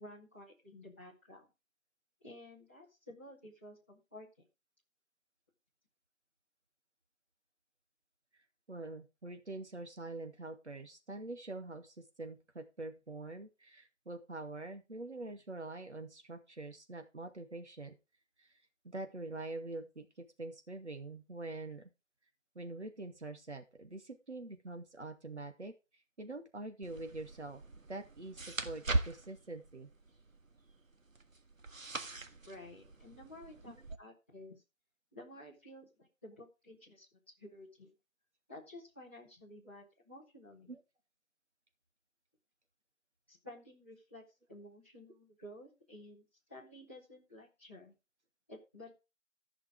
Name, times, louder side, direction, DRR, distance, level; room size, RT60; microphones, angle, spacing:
voice 1, 0.0-1.5 2.2-4.3 32.4-34.6 35.1-37.1 37.4-37.9 38.5-40.7 43.3-44.2 44.5-47.9 48.5-48.9, left 1 dB, 10° left, -9 dB, 1.5 m, -53 dB
voice 2, 8.7-17.9 18.4-18.5 18.8-21.9 22.6-25.7 26.2-27.6 27.9-29.9 40.7-40.8, right 2 dB, 60° right, 6 dB, 2.4 m, -45 dB
sound 1, 26.8-34.0, right 2 dB, 75° right, 1.6 m, -41 dB
14.5 x 6.0 x 5.0 m, 0.28 s
figure-of-eight pair, 175°, 40 cm